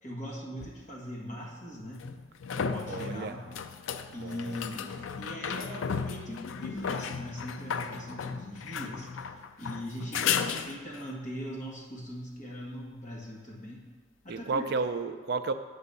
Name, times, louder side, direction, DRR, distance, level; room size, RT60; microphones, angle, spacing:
voice 1, 0.0-2.1 2.5-3.5 4.1-4.9 5.2-9.1 9.6-13.9 14.2-14.6, equal, 40° left, -3 dB, 1.6 m, -40 dB
sound 1, 0.6-0.7 2.0-11.1 14.5-14.6, left 6 dB, 90° left, 0.4 m, -35 dB
voice 2, 2.8-3.4 4.2-4.6 14.3-15.5, right 4 dB, 55° right, 10 dB, 0.4 m, -32 dB
8.1 x 4.0 x 6.8 m, 1.5 s
head